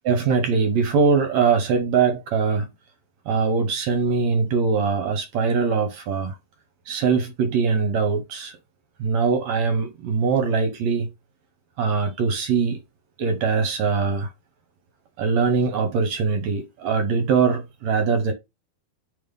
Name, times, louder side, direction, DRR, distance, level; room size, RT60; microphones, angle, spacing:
voice 1, 0.1-2.7 3.3-6.4 6.9-8.5 9.0-11.1 11.8-12.8 13.2-14.3 15.2-18.3, right 5 dB, 70° right, 1.7 m, -22 dB
5.5 x 3.7 x 5.3 m
omnidirectional pair, 4.4 m